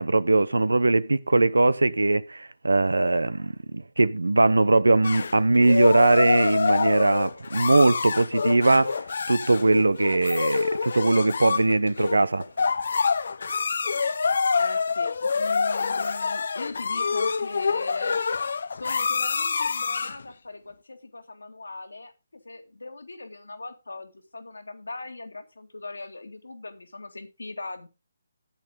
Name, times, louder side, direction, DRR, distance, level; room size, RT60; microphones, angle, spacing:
voice 1, 0.0-9.0 9.3-12.4, right 2 dB, 85° right, 0.8 m, -21 dB
sound 1, 5.0-20.2, left 5 dB, 65° left, 0.6 m, -26 dB
voice 2, 14.6-18.3 18.7-27.9, left 2 dB, 85° left, 2.2 m, -40 dB
13.5 x 8.4 x 3.6 m
figure-of-eight pair, 150°, 0 cm